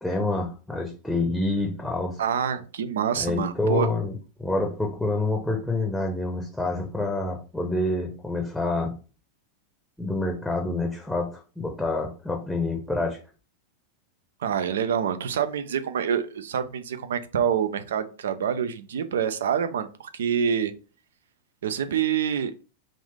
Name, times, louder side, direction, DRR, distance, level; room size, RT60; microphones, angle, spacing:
voice 1, 0.0-2.2 3.1-4.1 4.4-8.9 10.0-13.2, left 2 dB, ahead, 0.7 m, -27 dB
voice 2, 2.2-3.9 14.4-20.7 21.6-22.5, right 8 dB, 60° right, 0.4 m, -26 dB
3.5 x 2.6 x 3.4 m
figure-of-eight pair, 90°, 0 cm